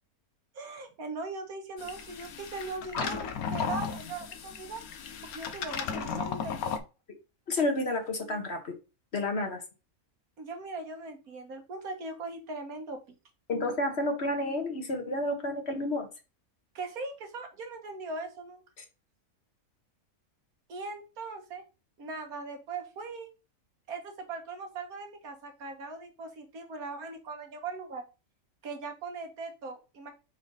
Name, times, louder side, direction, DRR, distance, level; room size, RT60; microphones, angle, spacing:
voice 1, 0.5-4.8 5.3-6.7 10.4-13.0 16.7-18.6 20.7-21.6 22.0-23.3 23.9-28.0 28.6-30.1, right 3 dB, 80° right, 5 dB, 1.7 m, -40 dB
sound 1, 1.8-6.8, left 6 dB, 75° left, 1.3 m, -35 dB
voice 2, 7.5-8.7 9.1-9.6 13.5-16.1 18.8-18.9, left 1 dB, 45° left, 4 dB, 1.5 m, -30 dB
5.2 x 5.1 x 4.0 m, 0.30 s
omnidirectional pair, 1.5 m